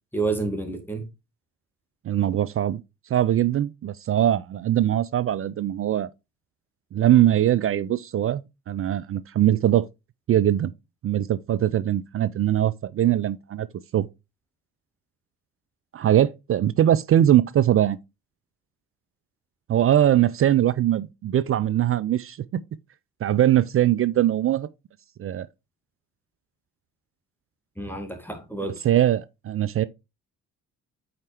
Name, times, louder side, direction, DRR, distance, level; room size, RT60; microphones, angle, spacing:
voice 1, 0.1-1.1 27.8-28.8, right 3 dB, 5° left, 2.1 m, -29 dB
voice 2, 2.0-2.8 3.1-6.1 6.9-9.8 10.3-10.7 11.0-13.7 13.9-14.1 15.9-18.0 19.7-22.6 23.2-24.7 25.2-25.5 28.8-29.8, right 11 dB, 30° right, 0.4 m, -21 dB
8.6 x 4.2 x 3.3 m
figure-of-eight pair, 45°, 47 cm